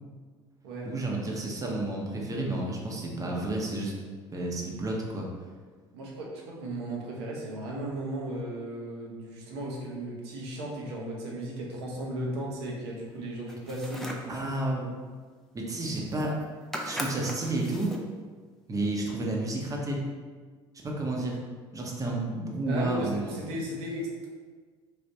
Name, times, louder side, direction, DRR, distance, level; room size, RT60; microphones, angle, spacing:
voice 1, 0.8-3.9 4.3-5.3 14.3-14.9 15.5-16.4 16.8-17.9 18.7-20.1 20.8-21.4 21.7-23.3, right 2 dB, 25° right, -2 dB, 0.7 m, -31 dB
voice 2, 5.9-14.5 22.7-24.3, right 1 dB, 70° right, -3 dB, 0.7 m, -36 dB
sound 1, 13.5-14.3 15.8-15.9 16.1-16.4 16.7-18.1, equal, 5° left, 0.4 m, -38 dB
3.4 x 2.4 x 2.7 m, 1.5 s
hypercardioid pair, 65°, 14 cm